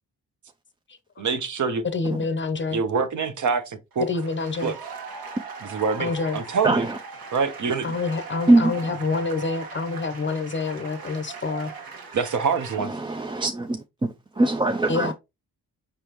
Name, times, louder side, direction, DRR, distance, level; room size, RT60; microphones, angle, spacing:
voice 1, 1.2-1.8 2.7-4.1 4.6-4.7 5.6-6.9 7.3-7.9 12.1-12.9, right 5 dB, 50° right, 0.9 m, -25 dB
voice 2, 1.9-2.8 4.1-4.7 6.0-6.4 7.8-11.7 14.9-15.1, left 4 dB, 30° left, 0.7 m, -27 dB
sound 1, 3.9-12.8, right 5 dB, 70° right, 1.5 m, -39 dB
voice 3, 6.6-7.0 8.5-8.7 12.8-13.8 14.4-15.1, right 2 dB, 15° right, 0.3 m, -21 dB
5.1 x 3.5 x 2.9 m
cardioid pair, 85°, 37 cm